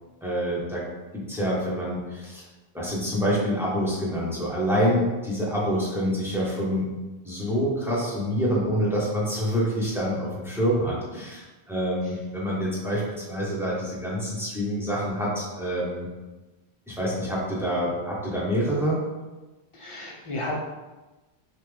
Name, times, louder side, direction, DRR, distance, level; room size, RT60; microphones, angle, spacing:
voice 1, 0.2-0.9 1.1-2.4 2.7-6.9 7.2-16.1 16.9-19.0, equal, ahead, -7 dB, 1.2 m, -26 dB
voice 2, 19.7-20.6, left 1 dB, 35° left, -2 dB, 0.7 m, -33 dB
5.6 x 2.4 x 3.4 m, 1.1 s
omnidirectional pair, 1.1 m